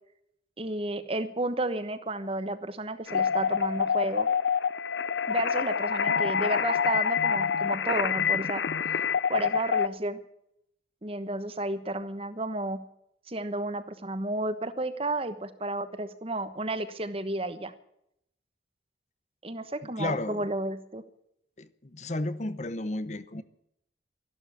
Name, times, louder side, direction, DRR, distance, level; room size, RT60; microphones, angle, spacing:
voice 1, 0.6-4.3 5.3-8.6 9.3-10.2 11.0-12.8 13.3-17.7 19.4-21.0, right 2 dB, 30° right, 12 dB, 1.1 m, -32 dB
sound 1, 3.1-9.9, left 6 dB, 75° left, 0.6 m, -27 dB
voice 2, 19.8-20.4 21.6-23.4, left 2 dB, 40° left, 14 dB, 0.9 m, -33 dB
13.5 x 12.0 x 8.5 m, 0.76 s
head